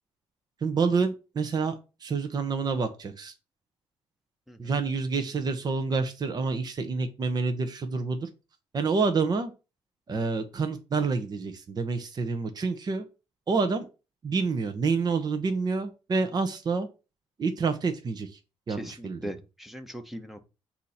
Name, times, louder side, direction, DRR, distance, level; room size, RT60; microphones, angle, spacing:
voice 1, 0.6-3.3 4.6-8.3 8.7-9.5 10.1-13.1 13.5-13.8 14.2-16.9 17.4-18.4 18.7-19.3, right 4 dB, 40° right, 0.9 m, -28 dB
voice 2, 18.8-20.4, equal, ahead, 1.0 m, -40 dB
8.2 x 2.9 x 4.2 m
cardioid pair, 90°, 11 cm